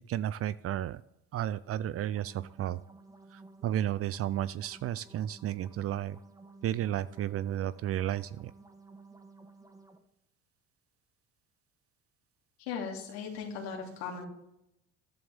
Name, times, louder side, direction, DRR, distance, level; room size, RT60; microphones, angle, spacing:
voice 1, 0.1-1.0 1.3-2.8 3.3-6.2 6.6-8.5, right 11 dB, 50° right, 17 dB, 0.5 m, -33 dB
sound 1, 2.0-10.0, right 3 dB, 10° right, 1.4 m, -55 dB
voice 2, 12.6-14.3, left 6 dB, 85° left, -1 dB, 2.8 m, -38 dB
14.0 x 11.0 x 3.6 m, 0.84 s
hypercardioid pair, 70°, 31 cm